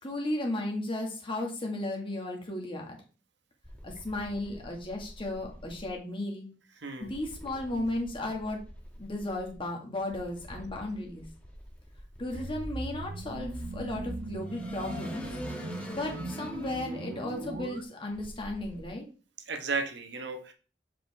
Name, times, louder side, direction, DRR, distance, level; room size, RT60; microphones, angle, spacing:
voice 1, 0.0-3.0 3.8-6.5 7.0-8.6 9.0-11.3 12.2-15.4 15.9-19.1, left 1 dB, 30° left, 0 dB, 1.8 m, -35 dB
sound 1, 3.6-5.9 7.0-9.6 10.1-18.9, equal, 5° left, 1.4 m, -46 dB
sound 2, 12.3-17.8, right 2 dB, 50° right, 0.7 m, -39 dB
voice 2, 19.5-20.5, right 4 dB, 65° right, 6 dB, 1.3 m, -34 dB
7.4 x 5.2 x 3.6 m, 0.37 s
head